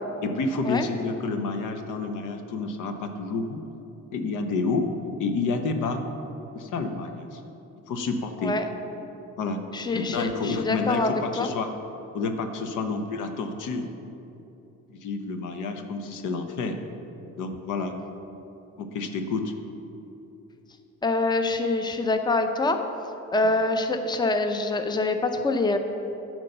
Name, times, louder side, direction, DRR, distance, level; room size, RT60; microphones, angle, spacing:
voice 1, 0.2-3.7 4.1-4.9 5.2-6.0 6.5-7.4 7.9-8.5 9.4-9.6 9.9-11.7 12.1-13.9 14.9-16.8 17.4-18.0 18.8-19.5, left 3 dB, 85° left, 6 dB, 0.8 m, -29 dB
voice 2, 9.7-11.5 21.0-22.8 23.3-25.8, left 2 dB, 15° left, 7 dB, 0.6 m, -25 dB
9.6 x 4.6 x 6.6 m, 2.9 s
cardioid pair, 90°, 30 cm